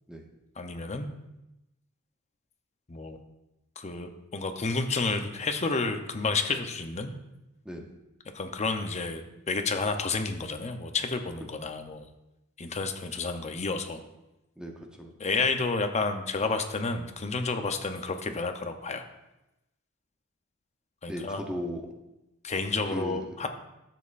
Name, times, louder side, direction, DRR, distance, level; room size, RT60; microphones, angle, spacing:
voice 1, 0.6-1.1 2.9-3.2 3.8-7.1 8.3-12.0 12.6-14.0 15.2-19.0 21.0-21.4 22.4-23.5, left 3 dB, 30° left, 6 dB, 0.7 m, -30 dB
voice 2, 14.6-15.1 21.1-21.9 22.9-23.5, equal, 5° right, 1 dB, 0.8 m, -37 dB
12.0 x 7.4 x 2.5 m, 0.95 s
head